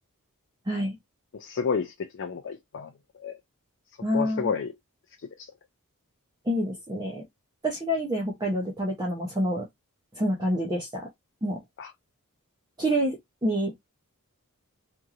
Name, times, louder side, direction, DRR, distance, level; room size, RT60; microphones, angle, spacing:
voice 1, 0.7-1.0 4.0-4.5 6.5-7.2 7.6-9.7 10.1-11.1 11.4-11.6 12.8-13.7, equal, 20° right, 0.7 m, -27 dB
voice 2, 1.3-3.4 4.1-4.7 5.2-5.5 11.8-11.9, left 6 dB, 55° left, 0.4 m, -31 dB
2.9 x 2.6 x 2.4 m
head